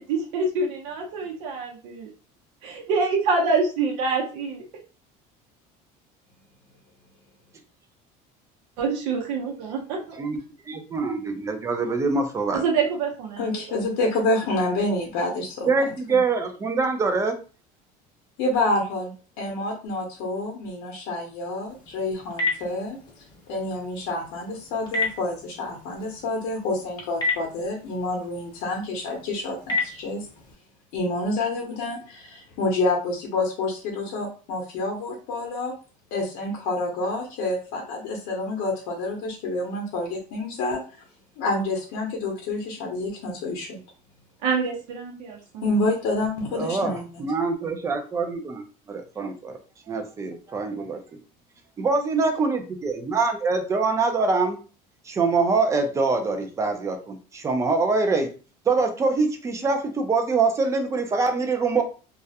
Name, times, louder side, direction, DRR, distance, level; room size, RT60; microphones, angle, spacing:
voice 1, 0.0-1.7 2.6-4.6 8.8-10.2 12.5-13.5 13.8-13.9 44.4-45.6, right 4 dB, 90° right, 0 dB, 0.7 m, -26 dB
voice 2, 10.7-12.6 15.7-17.3 46.6-49.6 49.9-51.0 51.8-54.6 55.1-58.3 58.7-61.8, right 4 dB, 15° right, 5 dB, 0.3 m, -24 dB
voice 3, 13.4-15.7 16.1-16.2 18.4-23.0 23.5-30.3 30.9-35.7 36.1-40.8 41.4-43.8 45.6-47.2, left 2 dB, 65° left, 0 dB, 0.7 m, -28 dB
Telephone, 21.7-30.5, left 3 dB, 25° left, 0.7 m, -33 dB
2.3 x 2.0 x 2.7 m, 0.36 s
cardioid pair, 155°, 18 cm